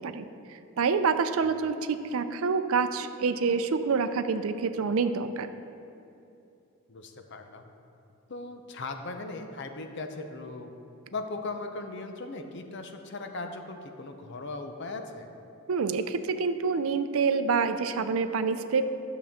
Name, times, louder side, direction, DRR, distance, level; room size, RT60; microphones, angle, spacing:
voice 1, 0.0-5.5 15.7-18.8, right 5 dB, 70° right, 10 dB, 0.5 m, -27 dB
voice 2, 6.9-7.7 8.3-10.7 11.1-15.3, left 3 dB, 55° left, 6 dB, 0.7 m, -38 dB
11.5 x 6.9 x 3.6 m, 2.8 s
head